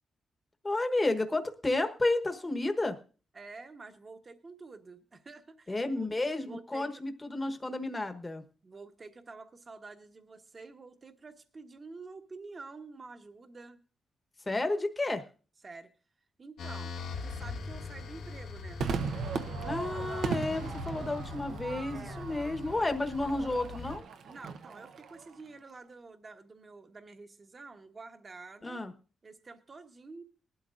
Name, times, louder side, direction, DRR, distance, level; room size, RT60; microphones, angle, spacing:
voice 1, 0.6-3.0 5.7-8.4 14.5-15.2 19.6-24.0 28.6-28.9, left 2 dB, 20° left, 7 dB, 1.1 m, -31 dB
voice 2, 3.3-6.1 6.4-7.0 8.6-13.8 15.6-15.9 16.4-16.9 17.2-18.8 21.9-22.3 24.2-28.8 29.2-30.2, right 3 dB, 30° right, 6 dB, 1.2 m, -49 dB
sound 1, 16.6-24.0, left 4 dB, 85° left, 1.5 m, -42 dB
Crowd / Fireworks, 18.8-25.3, right 5 dB, 75° right, 0.8 m, -37 dB
19.5 x 12.0 x 2.5 m, 0.37 s
cardioid pair, 130°, 0 cm